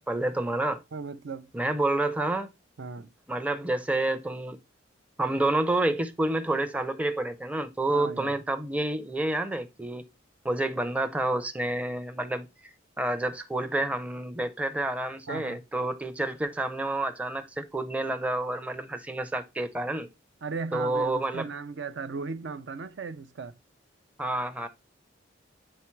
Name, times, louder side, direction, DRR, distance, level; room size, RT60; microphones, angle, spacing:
voice 1, 0.1-0.8 1.5-2.5 3.3-4.6 5.2-10.0 10.4-12.5 13.0-20.1 20.7-21.5 24.2-24.7, right 2 dB, 5° right, 0.5 m, -29 dB
voice 2, 0.9-1.5 2.8-3.1 7.9-8.3 15.3-15.6 20.4-23.6, right 4 dB, 65° right, 0.5 m, -36 dB
8.6 x 3.9 x 4.5 m
head